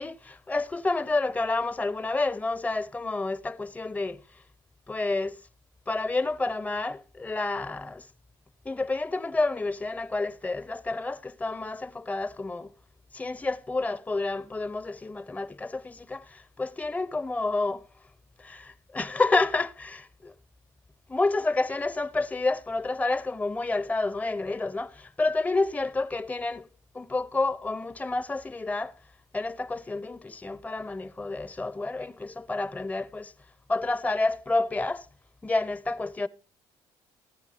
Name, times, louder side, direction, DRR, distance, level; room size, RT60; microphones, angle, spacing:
voice 1, 0.0-4.2 4.9-5.4 5.9-8.1 8.6-12.7 13.1-17.9 18.4-20.3 21.1-26.7 26.9-29.0 29.3-33.3 33.7-35.1 35.4-36.3, left 3 dB, 15° left, 0.7 m, -29 dB
15.0 x 10.5 x 4.3 m
supercardioid pair, 70°, 10 cm